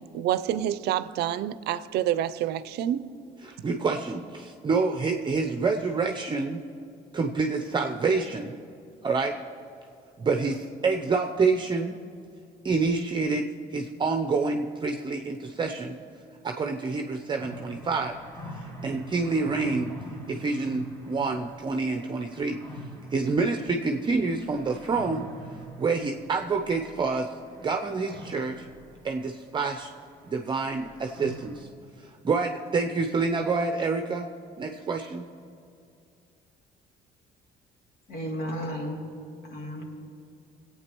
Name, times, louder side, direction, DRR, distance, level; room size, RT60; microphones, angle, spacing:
voice 1, 0.0-3.0, right 11 dB, 75° right, 0.5 m, -28 dB
voice 2, 3.4-6.6 7.1-8.6 9.0-9.4 10.2-12.0 12.6-16.0 16.4-18.1 18.8-19.9 20.3-22.6 23.1-25.3 25.8-28.7 29.0-29.9 30.2-31.7 32.0-34.3 34.6-35.3, right 4 dB, 30° right, 0.6 m, -27 dB
sound 1, 17.4-31.6, equal, 20° left, 1.9 m, -45 dB
voice 3, 38.1-39.0 39.5-39.9, equal, 70° left, 2.6 m, -33 dB
22.0 x 8.6 x 3.0 m
cardioid pair, 110°, 17 cm